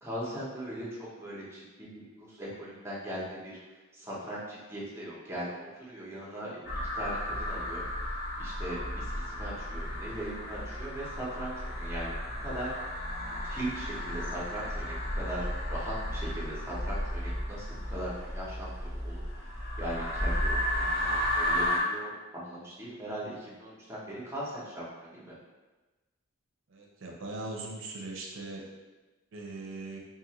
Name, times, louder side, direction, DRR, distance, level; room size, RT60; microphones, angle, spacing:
voice 1, 0.0-3.6 3.9-6.6 6.9-12.7 13.4-19.2 19.8-25.3, right 1 dB, 10° right, -6 dB, 0.7 m, -39 dB
sound 1, 6.7-21.8, left 1 dB, 45° left, 0.5 m, -33 dB
voice 2, 26.7-28.6 29.3-30.0, right 2 dB, 60° right, -1 dB, 0.5 m, -40 dB
2.7 x 2.4 x 2.9 m, 1.2 s
head